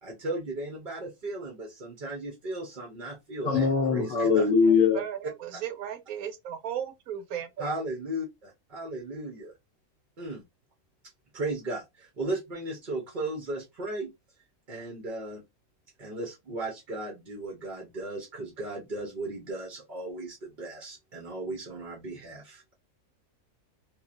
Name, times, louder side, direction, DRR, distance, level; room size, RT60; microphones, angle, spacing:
voice 1, 0.0-4.5 5.5-5.6 7.6-9.5 10.2-10.4 11.3-14.1 14.7-15.4 16.0-22.7, right 2 dB, 45° right, 0.8 m, -36 dB
voice 2, 3.4-5.1, left 5 dB, 70° left, 1.0 m, -22 dB
voice 3, 4.9-7.4, right 9 dB, 80° right, 1.1 m, -35 dB
3.0 x 2.4 x 2.4 m
omnidirectional pair, 1.5 m